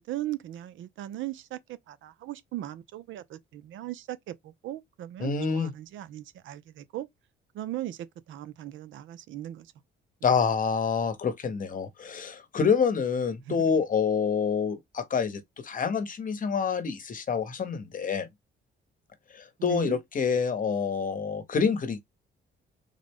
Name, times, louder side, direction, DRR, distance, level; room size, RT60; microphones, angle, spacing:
voice 1, 0.0-7.1 7.5-9.7 13.4-13.8 19.6-20.0, right 13 dB, 75° right, 0.5 m, -38 dB
voice 2, 5.2-5.7 10.2-18.3 19.3-22.0, left 6 dB, 45° left, 0.9 m, -27 dB
3.7 x 2.1 x 3.4 m
cardioid pair, 90°, 20 cm